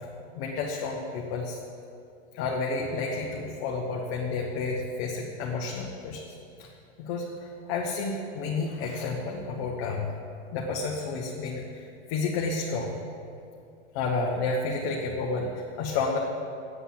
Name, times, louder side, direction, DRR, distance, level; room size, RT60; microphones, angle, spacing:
voice 1, 0.3-1.6 2.3-6.3 6.6-6.7 7.0-10.1 10.5-13.0 13.9-16.2, left 3 dB, 35° left, -1 dB, 1.2 m, -31 dB
10.0 x 8.1 x 7.7 m, 2.7 s
hypercardioid pair, 145°, 35 cm